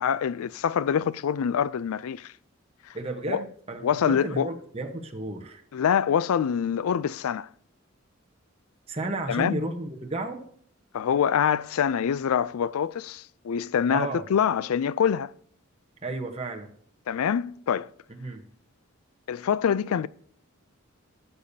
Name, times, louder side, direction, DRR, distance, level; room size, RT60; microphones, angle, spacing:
voice 1, 0.0-2.3 3.3-3.4 3.8-4.5 5.7-7.5 9.3-9.6 10.9-15.3 17.1-17.9 19.3-20.1, left 8 dB, 85° left, 0.4 m, -25 dB
voice 2, 2.9-5.6 8.9-10.4 13.9-14.2 16.0-16.7 18.2-18.4, right 2 dB, 30° right, 1.1 m, -33 dB
15.5 x 6.8 x 2.8 m
head